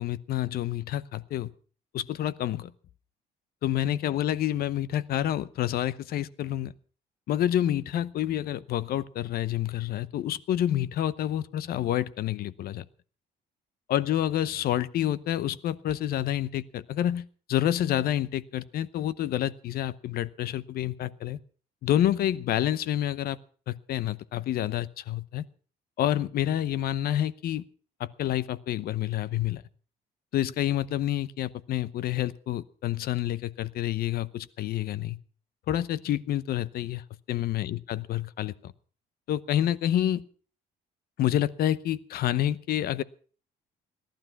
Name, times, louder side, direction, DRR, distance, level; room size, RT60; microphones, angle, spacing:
voice 1, 0.0-1.5 1.9-2.7 3.6-6.7 7.3-12.8 13.9-21.4 21.8-23.4 23.7-25.4 26.0-27.6 28.0-29.6 30.3-35.2 35.7-37.0 37.3-38.7 39.3-40.2 41.2-43.0, left 12 dB, 65° left, 19 dB, 0.8 m, -28 dB
18.0 x 11.5 x 5.9 m, 0.42 s
cardioid pair, 110°, 17 cm